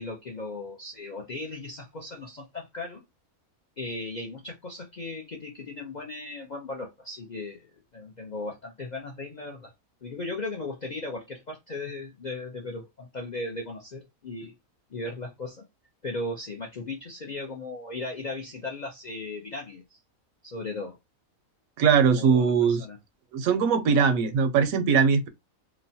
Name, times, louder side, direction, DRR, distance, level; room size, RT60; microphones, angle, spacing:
voice 1, 0.0-3.0 3.8-9.7 10.0-14.5 14.9-15.7 16.0-20.0 20.4-21.0 22.1-23.0, left 2 dB, 50° left, 0.5 m, -37 dB
voice 2, 21.8-22.9 23.3-25.3, right 6 dB, 75° right, 1.0 m, -21 dB
3.0 x 2.1 x 2.6 m
omnidirectional pair, 1.5 m